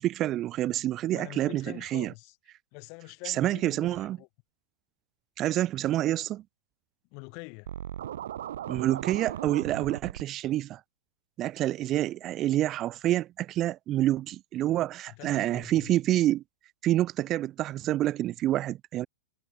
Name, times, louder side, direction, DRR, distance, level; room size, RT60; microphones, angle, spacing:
voice 1, 0.0-2.1 3.3-4.2 5.4-6.4 8.7-10.8 11.4-16.4 16.8-19.1, right 14 dB, 35° right, 1.2 m, -27 dB
voice 2, 1.1-2.4 2.7-4.3 7.1-7.7 15.1-15.9, left 36 dB, 45° left, 3.6 m, -45 dB
Scratching (performance technique), 7.7-10.2, right 11 dB, 70° right, 0.8 m, -37 dB
hypercardioid pair, 105°, 0 cm